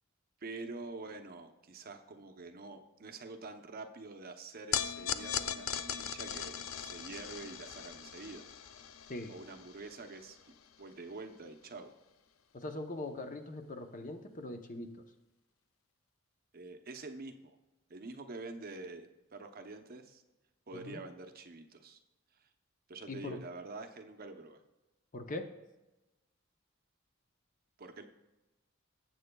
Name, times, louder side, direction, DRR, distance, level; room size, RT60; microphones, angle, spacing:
voice 1, 0.4-8.5 9.3-11.9 16.5-17.6 17.9-20.2 20.7-22.0 22.9-24.6 27.8-28.0, right 3 dB, 45° right, 6 dB, 0.7 m, -47 dB
sound 1, 4.7-11.1, left 8 dB, 85° left, 0.5 m, -39 dB
voice 2, 12.5-14.9 20.7-21.0 23.1-23.4 25.1-25.5, left 2 dB, 40° left, 7 dB, 0.7 m, -41 dB
16.5 x 7.8 x 2.3 m, 1.0 s
head